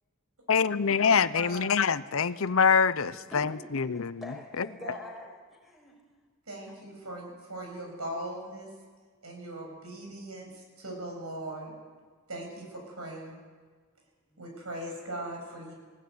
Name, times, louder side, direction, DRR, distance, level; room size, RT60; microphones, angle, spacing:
voice 1, 0.5-4.2 4.6-4.7, left 6 dB, 65° left, 0.7 m, -25 dB
voice 2, 1.0-1.7 4.8-4.9 6.5-8.7 9.2-11.7 12.3-13.4 14.4-15.7, right 1 dB, 85° right, 7.6 m, -40 dB
voice 3, 3.1-6.0 14.3-14.5, left 2 dB, ahead, 5.9 m, -46 dB
21.0 x 18.0 x 9.6 m
head